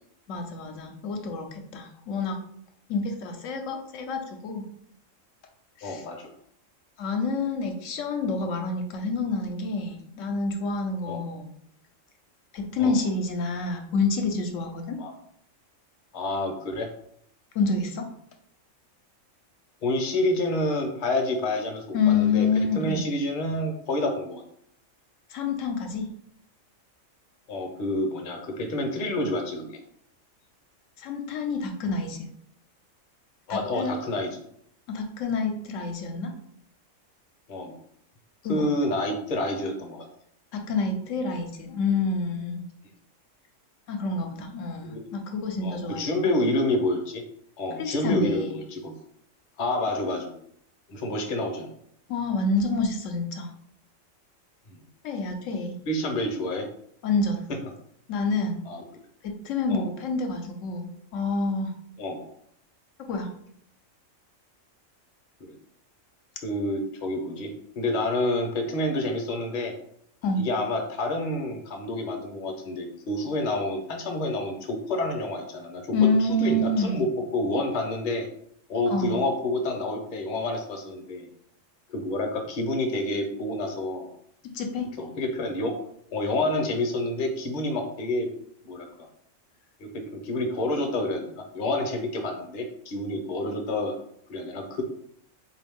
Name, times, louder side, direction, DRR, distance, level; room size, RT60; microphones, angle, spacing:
voice 1, 0.3-2.4 2.9-4.6 5.8-6.0 7.0-11.5 12.5-15.0 17.5-18.1 21.9-23.0 25.3-26.1 31.0-32.3 33.5-33.9 34.9-36.3 38.4-38.7 40.5-42.6 43.9-46.4 47.8-48.6 52.1-53.5 55.0-55.7 57.0-57.4 58.1-58.6 59.2-61.7 63.1-63.3 70.2-70.5 75.9-77.0 78.9-79.2 84.5-84.9, left 3 dB, 75° left, 4 dB, 0.9 m, -28 dB
voice 2, 5.8-6.3 11.1-11.2 12.8-12.9 15.0-15.1 16.1-16.9 19.8-22.5 22.7-24.4 27.5-29.8 33.5-34.4 37.5-37.8 38.5-40.1 44.8-45.0 45.6-47.2 47.6-48.9 49.6-50.3 50.9-51.7 54.7-54.8 55.9-56.6 58.6-58.8 59.7-59.9 62.0-62.3 65.4-65.5 66.4-67.5 67.8-69.7 70.4-75.9 76.2-77.1 77.3-78.3 78.7-81.3 81.9-84.1 85.0-85.7 86.1-88.3 88.6-88.9 89.8-94.0 94.3-94.8, left 1 dB, 45° left, 3 dB, 0.7 m, -28 dB
3.9 x 2.6 x 3.5 m, 0.68 s
omnidirectional pair, 1.4 m